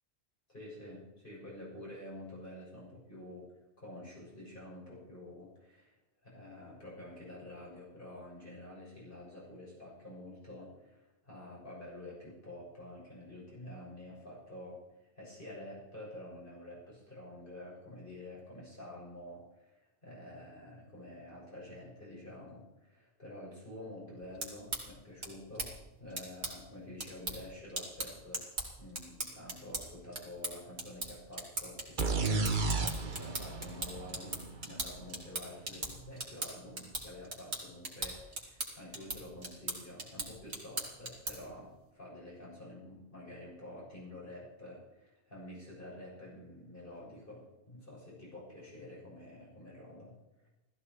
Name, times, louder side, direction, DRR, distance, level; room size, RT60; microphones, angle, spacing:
voice 1, 0.5-3.5 3.8-5.9 6.2-14.8 15.1-28.4 28.8-50.1 50.4-50.5, left 1 dB, 50° left, -5 dB, 7.3 m, -49 dB
sound 1, 24.2-41.6, right 2 dB, 70° right, 2.9 m, -41 dB
sound 2, 32.0-35.7, right 3 dB, 45° right, 1.2 m, -34 dB
16.0 x 14.5 x 4.7 m, 0.97 s
omnidirectional pair, 1.1 m